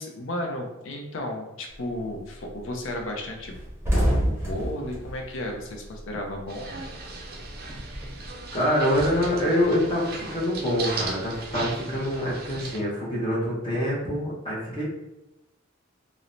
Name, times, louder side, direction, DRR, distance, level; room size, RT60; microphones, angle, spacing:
voice 1, 0.0-3.6 3.8-6.8, left 1 dB, 75° left, 2 dB, 0.5 m, -33 dB
sound 1, 1.7-2.1 2.5-2.6 2.9-3.0 3.3-6.3 6.6-8.3, equal, 15° right, 0.7 m, -28 dB
sound 2, 6.5-12.8, right 3 dB, 50° right, 0.4 m, -37 dB
voice 2, 8.5-14.8, equal, 25° left, -5 dB, 0.6 m, -25 dB
3.1 x 2.0 x 2.5 m, 0.95 s
head